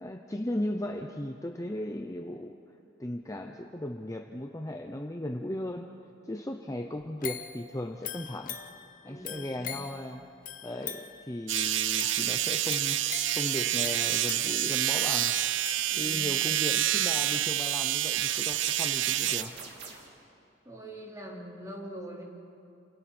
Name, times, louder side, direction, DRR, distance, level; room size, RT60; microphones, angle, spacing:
voice 1, 0.0-2.6 3.0-5.9 6.2-8.6 9.0-10.2 10.6-13.0 13.3-15.4 16.0-19.6, left 1 dB, 15° left, 4 dB, 0.7 m, -36 dB
sound 1, 7.2-16.5 16.9-17.0, left 9 dB, 45° left, 0.9 m, -43 dB
voice 2, 9.1-9.9 15.9-16.3 20.6-22.2, right 1 dB, 20° right, -4 dB, 4.4 m, -43 dB
sound 2, 11.5-19.4, right 13 dB, 85° right, 0.6 m, -28 dB
sound 3, 15.2-15.6 17.3-17.7 19.2-20.2, right 4 dB, 65° right, 3.1 m, -45 dB
30.0 x 28.5 x 4.4 m, 2.8 s
head